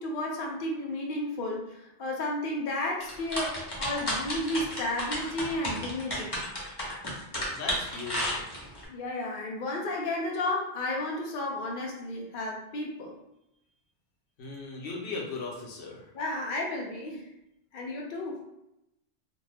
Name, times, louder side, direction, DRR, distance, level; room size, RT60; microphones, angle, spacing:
voice 1, 0.0-6.3 8.9-13.2 16.1-17.3 17.7-18.4, left 1 dB, 60° left, -1 dB, 0.7 m, -32 dB
sound 1, 3.0-8.8, left 1 dB, 25° left, 0.7 m, -32 dB
voice 2, 7.5-8.5 14.4-16.1, left 3 dB, 80° left, -2 dB, 1.0 m, -38 dB
2.5 x 2.2 x 3.3 m, 0.85 s
omnidirectional pair, 1.1 m